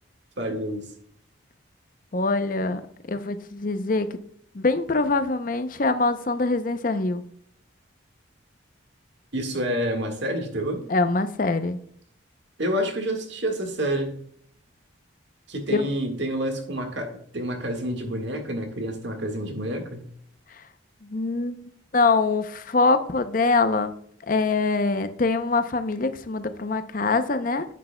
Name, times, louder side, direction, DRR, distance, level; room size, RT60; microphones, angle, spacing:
voice 1, 0.4-0.9 9.3-10.8 12.6-14.2 15.5-20.1, right 1 dB, 60° right, 4 dB, 1.7 m, -28 dB
voice 2, 2.1-2.8 3.1-4.2 4.5-7.2 10.9-11.8 15.7-15.9 21.0-21.6 21.9-23.9 24.3-27.6, left 3 dB, 40° left, 10 dB, 0.6 m, -24 dB
9.4 x 8.3 x 2.2 m, 0.65 s
head